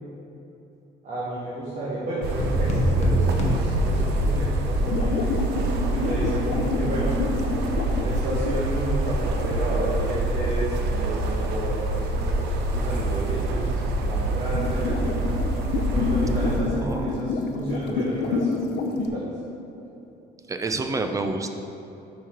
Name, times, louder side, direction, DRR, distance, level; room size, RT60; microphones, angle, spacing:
voice 1, 1.0-5.2 5.9-7.2 8.0-15.5 15.9-18.5 18.9-19.3, right 1 dB, 45° right, -6 dB, 1.2 m, -31 dB
sound 1, 2.2-16.6, right 2 dB, 80° right, 0.7 m, -26 dB
sound 2, 2.4-4.6, equal, 40° left, 0.9 m, -25 dB
sound 3, 4.9-8.8 9.4-9.9 14.0-19.1, left 4 dB, 85° left, 0.5 m, -28 dB
voice 2, 16.8-17.2 20.5-21.5, right 3 dB, 20° right, 6 dB, 0.4 m, -28 dB
5.3 x 4.7 x 4.4 m, 3.0 s
cardioid pair, 110°, 17 cm